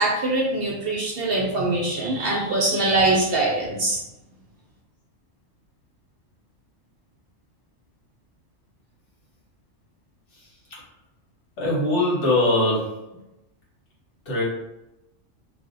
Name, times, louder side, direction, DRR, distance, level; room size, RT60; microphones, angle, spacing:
voice 1, 0.0-4.0, right 2 dB, 60° right, -1 dB, 0.7 m, -23 dB
voice 2, 11.6-13.1 14.3-14.4, left 1 dB, 70° left, -5 dB, 1.4 m, -21 dB
2.7 x 2.1 x 3.8 m, 0.91 s
omnidirectional pair, 1.3 m